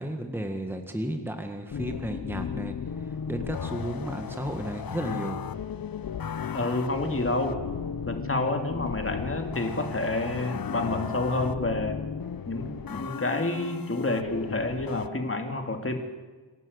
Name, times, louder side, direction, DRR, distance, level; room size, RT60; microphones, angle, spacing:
voice 1, 0.0-5.4, right 1 dB, 5° right, 5 dB, 1.6 m, -33 dB
sound 1, 1.7-15.1, left 7 dB, 50° left, 0.8 m, -35 dB
voice 2, 6.5-7.6 8.0-12.0 12.5-15.9, left 2 dB, 30° left, 5 dB, 2.5 m, -29 dB
28.5 x 12.5 x 8.0 m, 1.3 s
wide cardioid pair, 120°, 45 cm